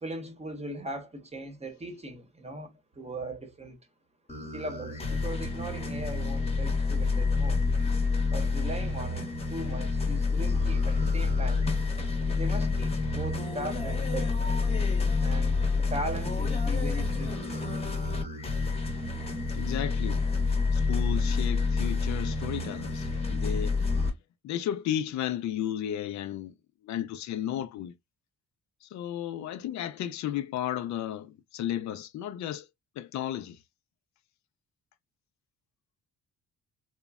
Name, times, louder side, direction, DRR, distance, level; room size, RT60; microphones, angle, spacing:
voice 1, 0.0-3.8 4.5-7.6 8.3-11.7 12.3-14.6 15.2-17.9, right 1 dB, 20° right, 0.9 m, -39 dB
sound 1, 4.3-24.1, left 4 dB, 20° left, 0.9 m, -28 dB
voice 2, 19.5-20.2 20.7-23.8 24.4-26.5 26.8-27.9 28.8-32.7 33.0-33.6, left 11 dB, 65° left, 0.5 m, -33 dB
3.0 x 2.1 x 2.3 m
cardioid pair, 90°, 30 cm